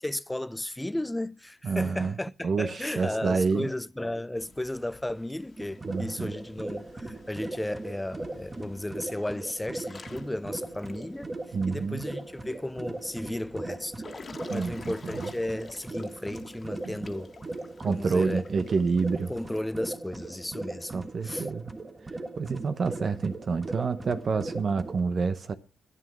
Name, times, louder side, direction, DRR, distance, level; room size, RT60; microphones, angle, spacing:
voice 1, 0.0-11.3 11.7-13.9 14.5-17.3 17.9-18.5 19.2-20.9 21.2-21.5, left 1 dB, 10° left, 0.5 m, -34 dB
voice 2, 1.6-2.1 2.4-3.7 5.9-6.3 11.5-12.0 14.5-15.3 16.8-17.0 17.8-19.3 20.9-21.7 22.4-25.5, right 5 dB, 50° right, 0.8 m, -28 dB
Water / Splash splatter / Drip, 4.3-19.6, left 4 dB, 40° left, 1.7 m, -52 dB
sound 1, 5.6-25.0, right 2 dB, 25° right, 1.5 m, -39 dB
11.0 x 9.5 x 6.1 m
cardioid pair, 70°, 0 cm